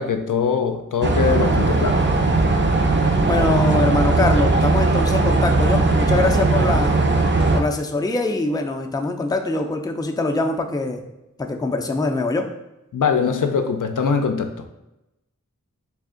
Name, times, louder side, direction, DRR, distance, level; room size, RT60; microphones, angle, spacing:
voice 1, 0.0-2.0 12.9-14.7, left 6 dB, 70° left, 6 dB, 0.4 m, -22 dB
sound 1, 1.0-7.6, right 3 dB, 35° right, 0.5 m, -18 dB
voice 2, 3.3-7.0 7.5-11.0 11.4-12.5, left 2 dB, 10° left, 4 dB, 0.4 m, -23 dB
3.4 x 2.4 x 3.7 m, 0.94 s
wide cardioid pair, 40°, 32 cm